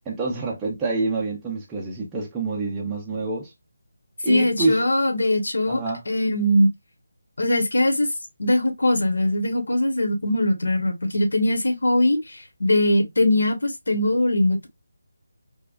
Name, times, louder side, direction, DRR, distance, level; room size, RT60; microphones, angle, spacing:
voice 1, 0.1-3.5 4.2-4.9 5.7-6.0, right 3 dB, 5° right, 0.5 m, -26 dB
voice 2, 4.3-6.7 7.4-8.1 8.4-14.7, left 1 dB, 80° left, 1.3 m, -21 dB
4.6 x 2.2 x 2.3 m
figure-of-eight pair, 175°, 0 cm